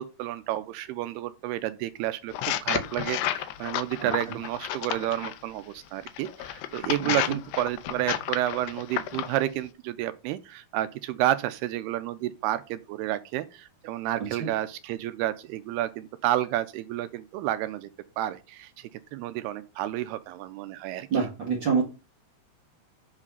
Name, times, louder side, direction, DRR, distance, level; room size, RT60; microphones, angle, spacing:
voice 1, 0.0-17.9 18.2-21.1, right 14 dB, 85° right, 2.4 m, -30 dB
sound 1, 2.3-5.4 6.1-9.4, left 12 dB, 90° left, 2.0 m, -31 dB
voice 2, 4.0-4.3 7.0-7.4 14.4-14.5 21.1-21.8, right 6 dB, 60° right, 1.2 m, -27 dB
8.5 x 5.0 x 5.4 m
omnidirectional pair, 4.9 m